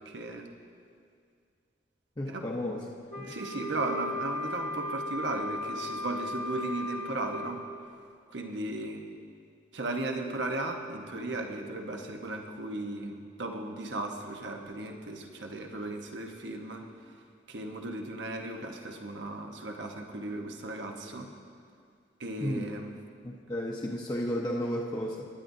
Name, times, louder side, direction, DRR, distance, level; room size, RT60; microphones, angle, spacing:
voice 1, 0.0-0.5 2.3-2.5 3.2-7.6 8.3-9.0 9.7-17.2 17.5-21.3 22.2-22.9, right 2 dB, 90° right, 2 dB, 1.1 m, -36 dB
voice 2, 2.2-2.8 3.2-3.4 22.4-22.7 23.2-25.3, equal, 25° left, -3 dB, 0.7 m, -33 dB
Wind instrument woodwind instrument, 3.1-7.6, left 1 dB, 55° right, 1.1 m, -36 dB
22.0 x 10.5 x 2.7 m, 2.2 s
head